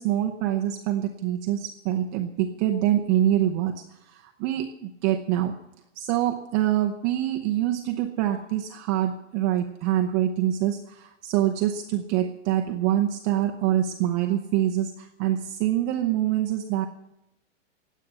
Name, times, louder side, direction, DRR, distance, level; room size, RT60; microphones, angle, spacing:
voice 1, 0.0-5.5 6.0-16.9, right 12 dB, 15° right, 4 dB, 0.4 m, -25 dB
19.5 x 8.3 x 6.7 m, 0.85 s
supercardioid pair, 165°, 35 cm